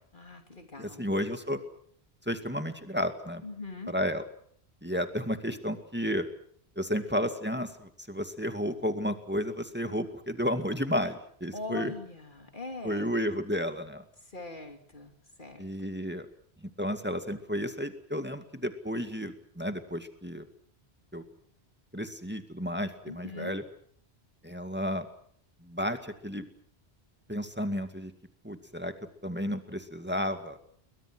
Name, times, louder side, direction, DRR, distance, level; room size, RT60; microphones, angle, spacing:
voice 1, 0.1-1.1 3.4-3.9 11.5-13.1 14.3-15.1 15.4-15.7 23.1-23.6, left 3 dB, 50° left, 5 dB, 3.0 m, -41 dB
voice 2, 0.8-1.6 2.3-3.4 3.9-4.2 4.8-6.3 6.8-11.9 12.8-14.0 15.6-16.3 16.8-20.5 21.1-21.2 21.9-23.6 24.4-25.1 25.6-26.5 27.3-28.1 28.4-28.9 29.2-30.6, equal, 10° right, 7 dB, 2.2 m, -32 dB
29.5 x 22.5 x 6.3 m, 0.62 s
omnidirectional pair, 1.1 m